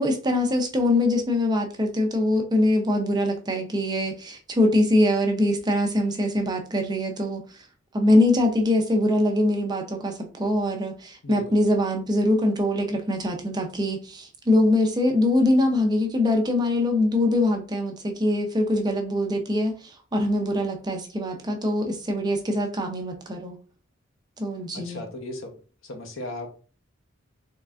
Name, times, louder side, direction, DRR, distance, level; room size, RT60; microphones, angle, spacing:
voice 1, 0.0-7.4 7.9-23.6 24.4-25.0, left 1 dB, 20° right, 3 dB, 0.5 m, -23 dB
voice 2, 11.2-11.6 24.7-25.6 25.8-26.5, left 1 dB, 70° left, 4 dB, 0.8 m, -36 dB
3.7 x 3.2 x 2.4 m, 0.38 s
head